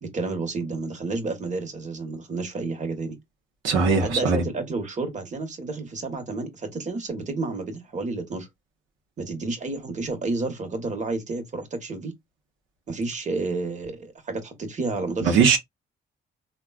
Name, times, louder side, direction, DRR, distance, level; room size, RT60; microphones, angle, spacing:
voice 1, 0.0-3.2 4.0-8.5 9.2-12.1 12.9-15.5, right 3 dB, 35° right, 1.1 m, -30 dB
voice 2, 3.6-4.4 15.2-15.6, right 5 dB, 85° right, 0.8 m, -20 dB
3.4 x 2.2 x 2.3 m
cardioid pair, 90°, 20 cm